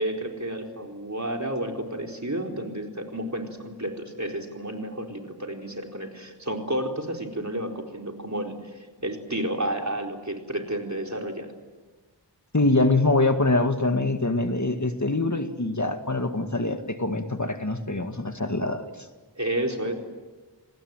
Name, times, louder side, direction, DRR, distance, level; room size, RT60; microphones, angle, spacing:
voice 1, 0.0-11.5 19.4-19.9, right 1 dB, 40° right, 2 dB, 4.3 m, -31 dB
voice 2, 12.5-19.1, left 2 dB, 40° left, 7 dB, 2.0 m, -24 dB
28.5 x 19.5 x 9.1 m, 1.3 s
wide cardioid pair, 40°, 42 cm